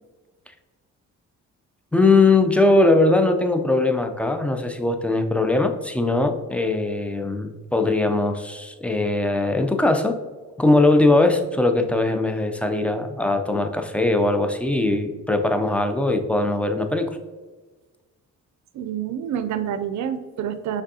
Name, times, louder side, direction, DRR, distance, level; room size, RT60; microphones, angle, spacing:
voice 1, 1.9-10.2 10.6-17.1, left 2 dB, 5° left, 6 dB, 0.4 m, -20 dB
voice 2, 18.7-20.8, right 9 dB, 70° right, 11 dB, 0.5 m, -28 dB
5.0 x 3.4 x 2.7 m, 1.3 s
cardioid pair, 90°, 30 cm